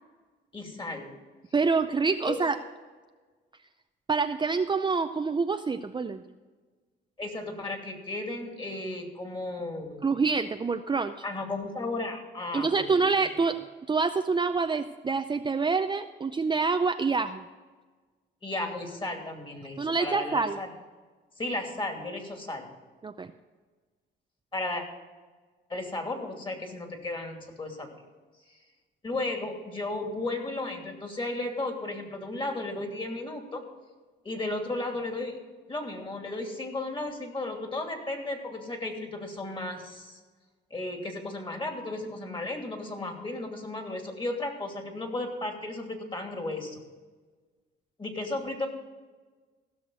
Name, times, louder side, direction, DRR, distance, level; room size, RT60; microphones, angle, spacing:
voice 1, 0.5-1.1 2.2-2.4 7.2-10.1 11.2-13.0 13.4-13.5 18.4-20.7 21.4-22.7 24.5-24.8 25.7-27.9 28.5-28.6 29.0-33.6 34.2-35.4 35.7-40.2 40.7-46.8 48.0-48.7, left 2 dB, 25° left, 3 dB, 2.7 m, -34 dB
voice 2, 1.5-2.6 4.1-6.2 10.0-11.1 12.5-13.6 13.9-17.4 19.8-20.6 23.0-23.3, right 4 dB, 25° right, 7 dB, 0.5 m, -26 dB
16.0 x 6.5 x 6.3 m, 1.4 s
cardioid pair, 90°, 20 cm